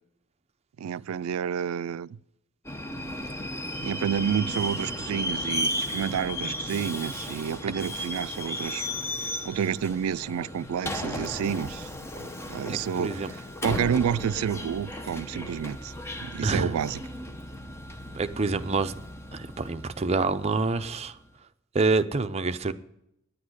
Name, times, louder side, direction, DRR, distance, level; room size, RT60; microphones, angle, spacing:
voice 1, 0.8-2.2 3.8-8.9 9.4-11.9 12.1-13.4 13.6-15.9 16.2-17.0, right 8 dB, 85° right, 0.3 m, -29 dB
Subway metro underground, 2.6-21.1, left 1 dB, 10° left, 0.8 m, -35 dB
voice 2, 12.7-13.3 16.4-16.7 18.1-18.9 19.3-21.1 21.7-22.7, right 3 dB, 30° right, 0.6 m, -27 dB
10.0 x 8.5 x 7.9 m
head